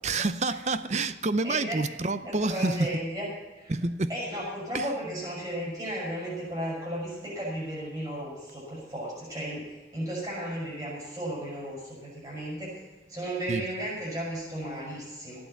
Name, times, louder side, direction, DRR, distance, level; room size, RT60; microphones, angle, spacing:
voice 1, 0.0-2.9 3.7-4.1 4.7-4.9 13.5-13.7, right 3 dB, 40° right, 0.6 m, -28 dB
voice 2, 1.4-1.8 2.2-3.3 3.6-3.7 4.1-9.7 9.9-12.7 13.1-15.4, right 1 dB, 20° right, 6.0 m, -34 dB
15.0 x 8.9 x 7.1 m
head